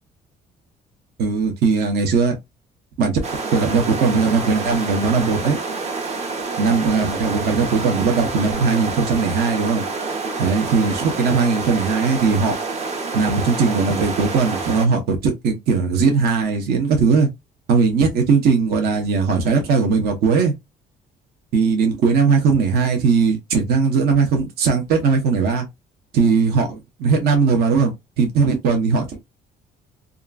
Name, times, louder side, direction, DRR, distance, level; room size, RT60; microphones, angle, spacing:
voice 1, 1.2-2.3 3.0-3.2 3.5-5.6 6.6-9.8 10.4-12.6 13.1-17.3 17.7-20.5 21.5-25.6 26.1-29.2, right 5 dB, 70° right, 0.9 m, -19 dB
sound 1, 3.2-14.9, right 4 dB, 40° right, 0.8 m, -28 dB
2.8 x 2.5 x 2.3 m
cardioid pair, 110°, 17 cm